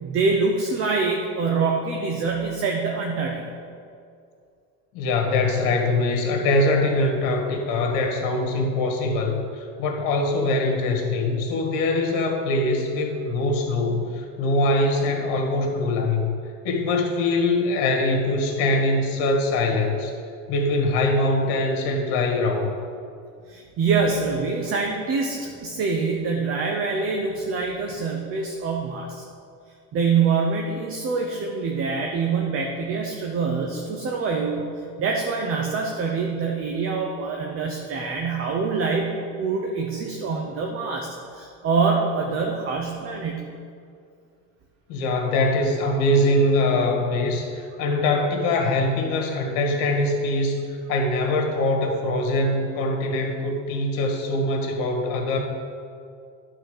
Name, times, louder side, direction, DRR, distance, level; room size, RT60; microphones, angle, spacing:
voice 1, 0.0-3.4 23.5-29.2 29.9-34.7 35.0-43.4, right 4 dB, 40° right, 1 dB, 0.9 m, -25 dB
voice 2, 4.9-16.3 16.6-20.1 20.5-22.7 44.9-55.4, left 2 dB, 70° left, 1 dB, 1.9 m, -23 dB
12.0 x 4.2 x 6.6 m, 2.4 s
cardioid pair, 150°, 35 cm